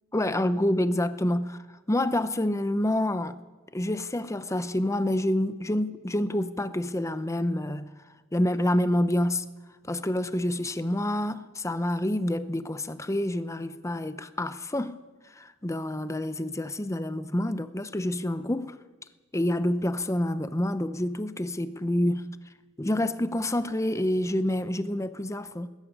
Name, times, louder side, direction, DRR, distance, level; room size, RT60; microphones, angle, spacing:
voice 1, 0.1-3.4 3.7-7.9 8.3-9.4 9.9-15.0 15.3-18.8 19.3-22.4 22.8-25.7, left 1 dB, 15° left, 0.7 m, -28 dB
20.5 x 14.0 x 9.9 m
head